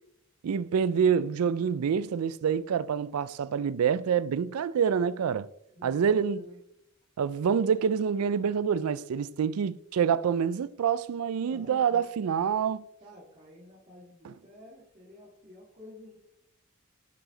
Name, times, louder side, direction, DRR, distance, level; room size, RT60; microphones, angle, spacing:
voice 1, 0.4-5.5 5.8-6.4 7.2-12.8, right 7 dB, 85° right, 0.4 m, -27 dB
voice 2, 5.7-6.6 11.4-12.4 13.0-16.2, left 1 dB, 30° right, 2.0 m, -50 dB
11.0 x 4.9 x 3.8 m
head